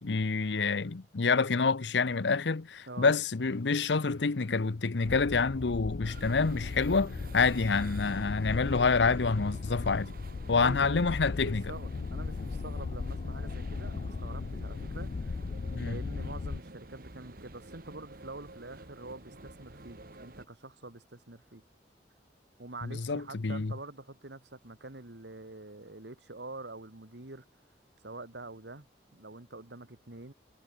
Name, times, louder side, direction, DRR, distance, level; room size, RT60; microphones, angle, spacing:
voice 1, 0.0-10.1 10.5-11.7 15.7-16.0 22.8-23.7, left 4 dB, 90° left, 0.8 m, -27 dB
sound 1, 5.0-16.6, left 4 dB, 50° left, 0.4 m, -37 dB
Monument - Mind the gap, 6.0-20.5, right 2 dB, 55° right, 2.0 m, -50 dB
voice 2, 10.6-15.4 15.8-21.6 22.6-27.5 28.0-28.9 29.1-30.3, right 2 dB, 80° right, 2.1 m, -46 dB
head